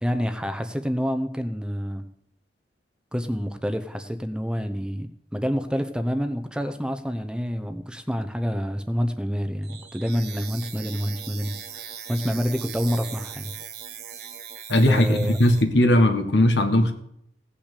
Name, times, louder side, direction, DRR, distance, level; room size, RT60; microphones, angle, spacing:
voice 1, 0.0-2.0 3.1-11.5 12.1-13.5 14.9-15.4, equal, 5° right, 0.7 m, -27 dB
sound 1, 9.6-15.6, right 8 dB, 60° right, 1.4 m, -39 dB
voice 2, 14.7-16.9, left 1 dB, 75° left, 1.7 m, -19 dB
17.0 x 5.9 x 8.4 m
head